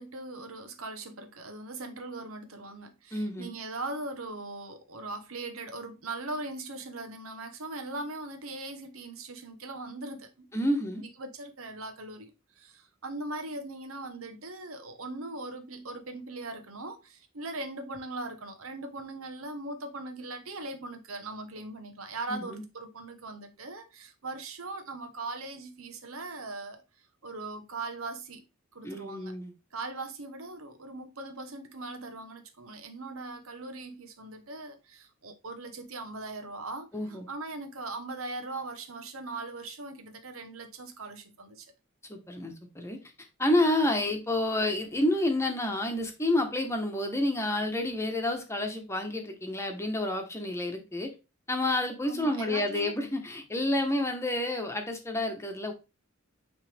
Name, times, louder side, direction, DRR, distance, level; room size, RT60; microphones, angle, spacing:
voice 1, 0.0-10.5 11.0-26.8 27.2-28.4 28.7-29.3 29.7-41.7 52.0-52.9, right 2 dB, 75° right, 1.1 m, -40 dB
voice 2, 3.1-3.5 10.5-11.0 22.3-22.6 28.8-29.5 36.9-37.3 42.1-43.0 43.4-51.1 51.5-55.7, left 1 dB, 15° left, 1.1 m, -29 dB
8.9 x 3.4 x 3.4 m
head